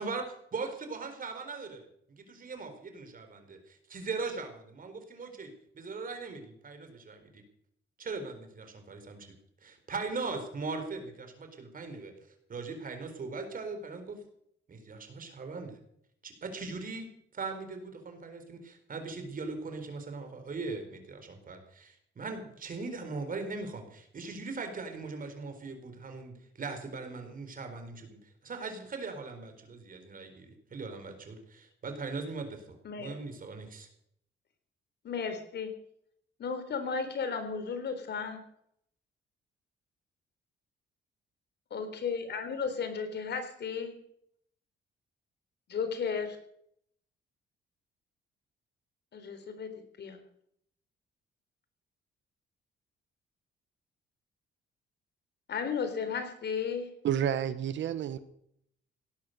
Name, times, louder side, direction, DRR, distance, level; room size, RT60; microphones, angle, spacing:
voice 1, 0.0-7.4 8.0-12.1 12.5-14.2 14.7-15.8 16.2-28.2 28.4-33.9, right 4 dB, 45° right, 4.2 m, -40 dB
voice 2, 32.8-33.2 35.0-35.7 36.4-38.4 41.7-43.9 45.7-46.4 49.1-49.7 50.0-50.2 55.5-56.9, left 6 dB, 60° left, 3.8 m, -34 dB
voice 3, 57.0-58.2, right 10 dB, 70° right, 1.1 m, -30 dB
17.5 x 11.0 x 6.7 m
cardioid pair, 90°, 20 cm